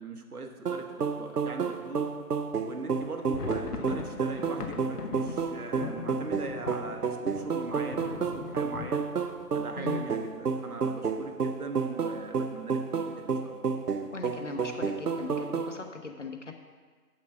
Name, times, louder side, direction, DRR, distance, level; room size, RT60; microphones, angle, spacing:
voice 1, 0.0-2.2 2.6-9.1 9.5-13.7, right 3 dB, 70° right, 5 dB, 1.1 m, -41 dB
sound 1, 0.7-15.8, right 5 dB, 90° right, 0.9 m, -31 dB
sound 2, 3.0-10.7 11.0-11.1 11.4-11.6 12.2-12.6, left 5 dB, 85° left, 1.0 m, -41 dB
voice 2, 14.1-16.5, left 4 dB, 50° left, 4 dB, 0.9 m, -39 dB
7.2 x 5.7 x 6.0 m, 1.5 s
figure-of-eight pair, 180°, 46 cm